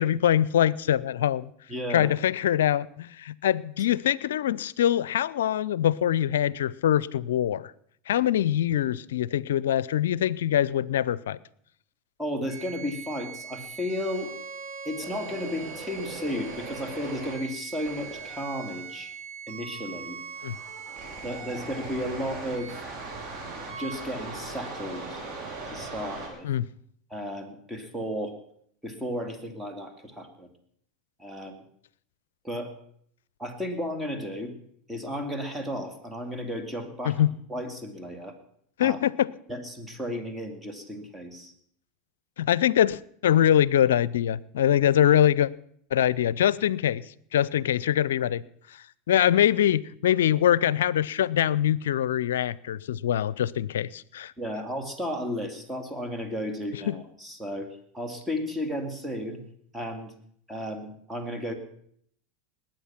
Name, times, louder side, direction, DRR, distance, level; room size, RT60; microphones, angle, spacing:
voice 1, 0.0-1.5 1.9-7.7 8.1-11.4 20.4-20.5 26.4-26.6 37.0-37.3 38.8-39.3 42.4-45.5 45.9-47.0 47.3-48.4 49.1-54.3 56.9-57.0, left 11 dB, 80° left, 22 dB, 0.5 m, -23 dB
voice 2, 1.7-2.1 12.2-14.3 14.8-19.1 19.5-20.2 21.2-22.7 23.8-25.2 25.7-26.5 27.1-28.4 28.8-30.5 31.2-31.6 32.4-32.7 33.4-34.5 34.9-37.2 37.5-38.3 38.8-39.0 39.5-41.5 54.4-57.7 57.9-59.4 59.7-60.1 60.5-61.5, equal, 10° right, 5 dB, 2.6 m, -33 dB
sound 1, 12.5-26.3, right 4 dB, 40° right, 5.6 m, -39 dB
20.5 x 9.0 x 5.9 m, 0.65 s
hypercardioid pair, 90°, 0 cm